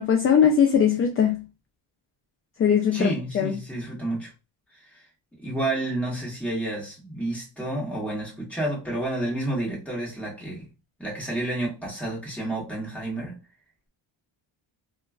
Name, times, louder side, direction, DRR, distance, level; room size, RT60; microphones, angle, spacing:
voice 1, 0.0-1.4 2.6-3.5, left 7 dB, 30° left, 0.3 m, -20 dB
voice 2, 2.9-4.3 4.7-5.0 5.4-10.7 11.0-13.4, right 1 dB, 5° left, 1.3 m, -30 dB
2.9 x 2.4 x 2.3 m
cardioid pair, 125°, 49 cm